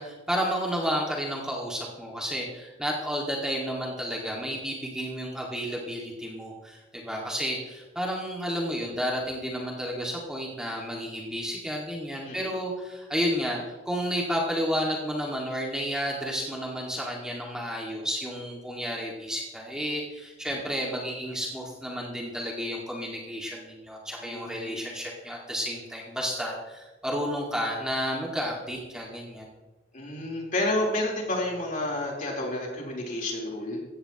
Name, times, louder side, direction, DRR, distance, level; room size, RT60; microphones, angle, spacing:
voice 1, 0.0-29.5, equal, 5° right, -2 dB, 1.9 m, -31 dB
voice 2, 24.2-24.9 29.9-33.8, left 1 dB, 45° left, -1 dB, 3.6 m, -30 dB
16.0 x 15.0 x 2.9 m, 1.1 s
head